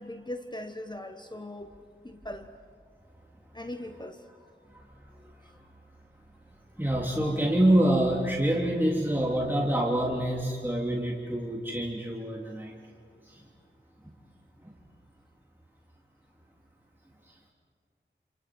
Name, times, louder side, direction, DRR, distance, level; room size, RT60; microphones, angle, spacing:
voice 1, 0.0-1.8 2.0-2.5 3.5-4.3, left 1 dB, 20° left, 6 dB, 1.2 m, -39 dB
voice 2, 6.8-12.7, right 1 dB, 10° right, -3 dB, 3.2 m, -26 dB
29.5 x 29.0 x 6.2 m, 2.3 s
wide cardioid pair, 55°, 20 cm